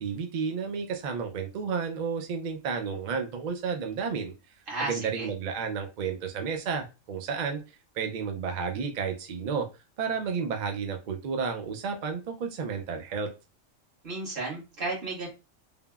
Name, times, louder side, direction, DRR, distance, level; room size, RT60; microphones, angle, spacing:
voice 1, 0.0-4.3 4.8-7.6 7.9-9.7 10.0-13.3, right 6 dB, 75° right, 4 dB, 0.4 m, -31 dB
voice 2, 4.7-5.3 14.0-15.3, right 2 dB, 45° right, -4 dB, 1.4 m, -33 dB
3.4 x 2.0 x 2.3 m, 0.28 s
omnidirectional pair, 1.3 m